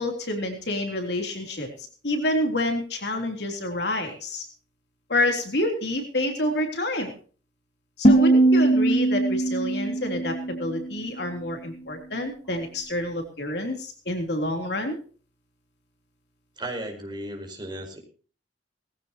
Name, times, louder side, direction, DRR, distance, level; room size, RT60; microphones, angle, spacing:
voice 1, 0.0-1.7 2.0-4.5 5.1-7.1 8.0-15.0, left 1 dB, 70° left, 3 dB, 3.6 m, -28 dB
sound 1, 8.0-11.0, right 2 dB, 40° left, 2.5 m, -21 dB
voice 2, 16.6-18.0, right 1 dB, 25° right, 4 dB, 4.7 m, -35 dB
19.5 x 15.5 x 3.0 m, 0.39 s
head